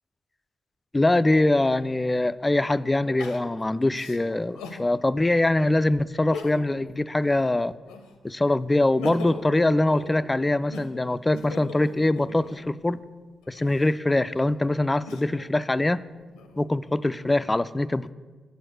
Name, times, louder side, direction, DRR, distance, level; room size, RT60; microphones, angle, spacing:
voice 1, 0.9-7.7 8.2-13.0 13.5-16.0 16.6-18.1, left 2 dB, 20° left, 15 dB, 0.3 m, -23 dB
Crying sobbing, 1.8-1.9 3.2-4.9 5.4-5.5 6.2-6.9 7.2-8.3 8.7-12.7 13.4-15.5 16.1-16.9, left 3 dB, 90° left, 0.6 m, -41 dB
8.1 x 4.6 x 6.4 m, 1.4 s
hypercardioid pair, 45°, 0 cm